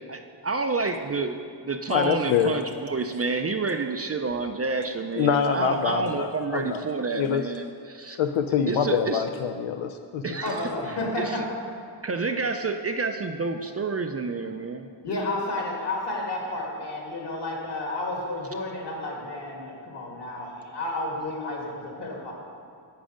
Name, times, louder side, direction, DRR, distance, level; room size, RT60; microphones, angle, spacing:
voice 1, 0.1-8.2 8.7-9.2 10.2-10.6 11.2-11.4 12.0-14.9, right 3 dB, 35° right, 6 dB, 0.4 m, -29 dB
voice 2, 1.9-2.5 5.1-6.8 7.2-7.4 8.2-10.2, left 7 dB, 90° left, 7 dB, 0.6 m, -25 dB
voice 3, 10.4-11.4 15.0-22.3, left 2 dB, 60° left, -2 dB, 2.4 m, -31 dB
10.5 x 8.8 x 5.1 m, 2.4 s
wide cardioid pair, 170°, 46 cm